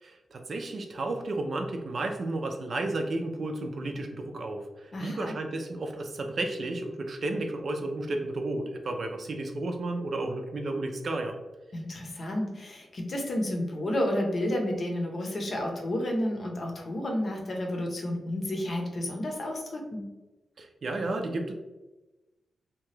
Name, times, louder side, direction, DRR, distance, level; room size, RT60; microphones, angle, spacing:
voice 1, 0.0-11.4 20.6-21.5, right 2 dB, 60° right, 4 dB, 0.4 m, -32 dB
voice 2, 4.9-5.3 11.7-20.0, left 1 dB, 55° left, 1 dB, 0.7 m, -31 dB
2.8 x 2.3 x 3.1 m, 1.1 s
cardioid pair, 75°, 0 cm